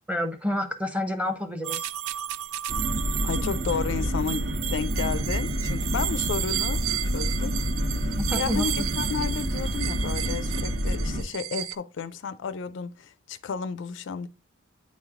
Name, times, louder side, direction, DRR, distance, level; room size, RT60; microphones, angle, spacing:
voice 1, 0.1-1.9 8.2-8.9, left 1 dB, 5° right, 0.7 m, -29 dB
sound 1, 1.6-11.8, right 13 dB, 90° right, 0.4 m, -33 dB
sound 2, 2.7-11.2, equal, 55° right, 1.1 m, -28 dB
voice 2, 3.2-6.8 7.1-7.5 8.0-14.3, left 6 dB, 60° left, 0.4 m, -32 dB
9.2 x 3.2 x 3.6 m
head